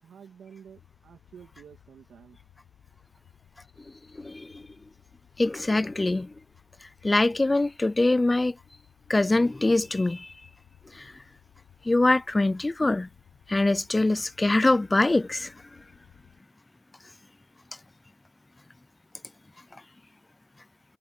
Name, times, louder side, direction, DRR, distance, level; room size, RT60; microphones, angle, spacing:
voice 1, 0.0-2.4, right 7 dB, 60° right, 2.6 m, -50 dB
sound 1, 0.6-16.4, left 11 dB, 75° left, 7.3 m, -58 dB
voice 2, 4.2-4.6 5.4-6.3 7.0-8.5 9.1-10.3 10.9-11.1 11.9-13.1 13.5-15.5, left 2 dB, 15° left, 0.4 m, -23 dB
cardioid pair, 90°, 0 cm